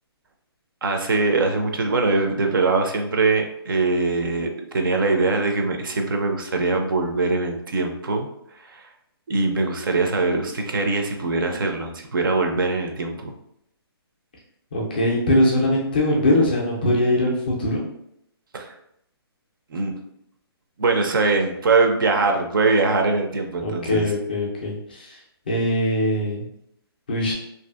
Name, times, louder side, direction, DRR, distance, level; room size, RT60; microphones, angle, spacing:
voice 1, 0.8-8.3 8.6-8.9 9.3-13.3 18.5-18.7 19.7-19.9 20.8-24.1, right 3 dB, 55° right, 4 dB, 0.4 m, -22 dB
voice 2, 14.7-17.8 23.6-25.2 25.5-26.5 27.1-27.3, left 1 dB, 20° left, -3 dB, 0.3 m, -21 dB
2.5 x 2.3 x 2.3 m, 0.76 s
hypercardioid pair, 175°, 13 cm